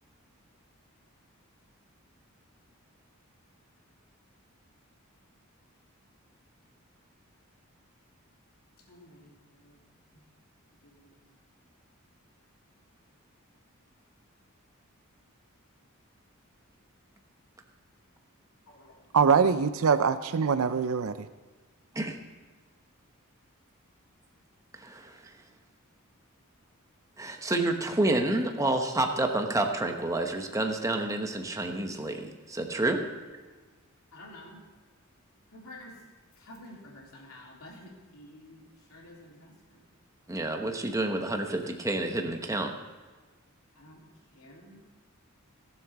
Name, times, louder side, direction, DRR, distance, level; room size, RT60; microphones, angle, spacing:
voice 1, 8.9-9.8 10.1-10.2 10.8-11.3 18.7-19.1 33.2-33.3 34.1-34.6 35.5-36.0 36.3-39.8 43.7-44.0 44.3-44.8, left 1 dB, 75° left, -2 dB, 3.2 m, -51 dB
voice 2, 19.1-21.3, right 6 dB, 75° right, 11 dB, 0.5 m, -23 dB
voice 3, 24.8-25.2 27.2-33.0 40.3-42.7, right 2 dB, 15° right, 4 dB, 1.0 m, -29 dB
16.0 x 7.5 x 5.8 m, 1.4 s
head